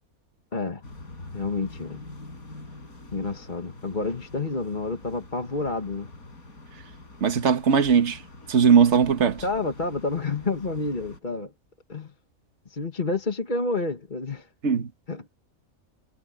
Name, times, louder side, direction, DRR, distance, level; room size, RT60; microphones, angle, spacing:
voice 1, 0.5-0.8 1.3-2.0 3.1-6.1 9.4-11.5 11.9-12.1 12.7-14.5 15.1-15.2, left 3 dB, 35° left, 1.8 m, -29 dB
sound 1, 0.8-11.2, left 2 dB, 80° left, 5.5 m, -45 dB
voice 2, 7.2-8.2 8.5-9.4 14.6-14.9, right 6 dB, 55° right, 1.7 m, -19 dB
omnidirectional pair, 1.5 m